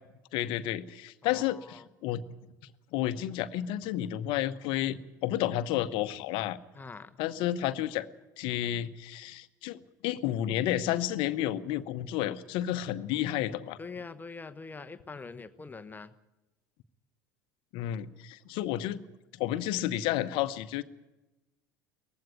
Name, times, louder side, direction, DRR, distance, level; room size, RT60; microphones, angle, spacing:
voice 1, 0.3-2.2 2.9-6.6 7.2-8.1 8.4-13.8 17.7-19.0 19.3-20.8, left 12 dB, 55° left, 13 dB, 1.0 m, -31 dB
voice 2, 1.2-1.9 6.7-7.2 13.8-16.1, left 4 dB, 15° left, 12 dB, 1.0 m, -44 dB
19.0 x 15.5 x 9.6 m, 1.0 s
figure-of-eight pair, 70°, 10 cm